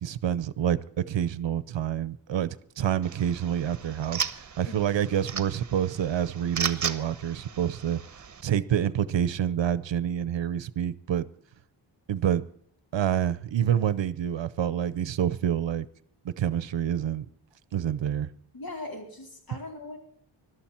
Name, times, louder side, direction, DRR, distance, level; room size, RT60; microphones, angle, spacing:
voice 1, 0.0-4.3 4.6-8.0 8.4-11.2 12.1-12.4 12.9-15.9 16.2-17.2 17.7-18.3, right 9 dB, 70° right, 0.8 m, -27 dB
sound 1, 3.0-8.4, right 6 dB, 40° right, 1.1 m, -36 dB
voice 2, 4.6-5.0 18.5-20.0, left 2 dB, 50° left, 4.5 m, -40 dB
21.0 x 13.0 x 4.4 m
wide cardioid pair, 180°, 46 cm